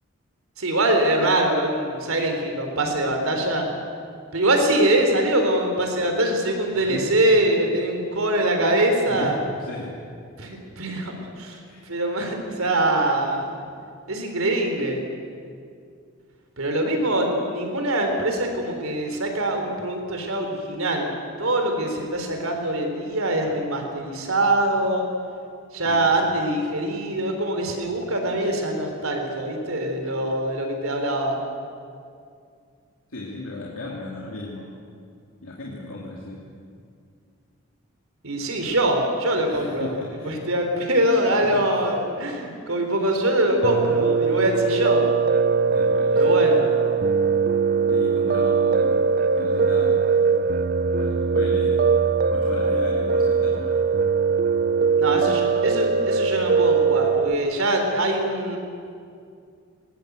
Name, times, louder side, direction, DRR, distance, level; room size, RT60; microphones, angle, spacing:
voice 1, 0.6-3.7 4.3-9.4 10.4-11.6 11.9-13.5 14.1-15.0 16.6-25.1 25.7-31.4 38.2-39.9 40.2-45.1 46.1-46.7 55.0-58.6, right 1 dB, 90° right, 4 dB, 3.7 m, -23 dB
voice 2, 6.7-7.1 9.1-10.0 11.7-11.8 25.8-26.3 28.9-29.1 33.1-34.7 35.4-36.4 39.4-40.3 41.4-41.7 45.7-46.4 47.9-49.0 49.3-50.1 51.0-51.9 52.3-53.8 55.1-55.5, left 2 dB, 85° left, -3 dB, 2.6 m, -36 dB
Piano, 43.6-57.3, right 5 dB, 45° right, 0.4 m, -21 dB
19.5 x 19.5 x 8.2 m, 2.3 s
head